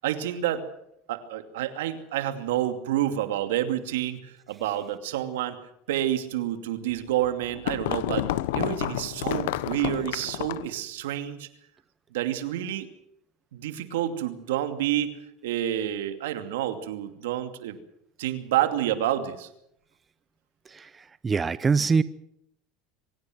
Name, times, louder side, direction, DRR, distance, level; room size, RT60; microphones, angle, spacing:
voice 1, 0.0-0.7 1.1-5.6 5.9-8.3 8.5-11.5 12.1-12.9 13.5-17.8 18.2-19.5, right 12 dB, 85° right, 9 dB, 2.6 m, -29 dB
sound 1, 7.0-10.8, left 15 dB, 80° left, 1.1 m, -30 dB
voice 2, 21.2-22.0, right 5 dB, 20° right, 16 dB, 0.8 m, -22 dB
25.0 x 16.5 x 7.9 m, 0.76 s
supercardioid pair, 115°, 0 cm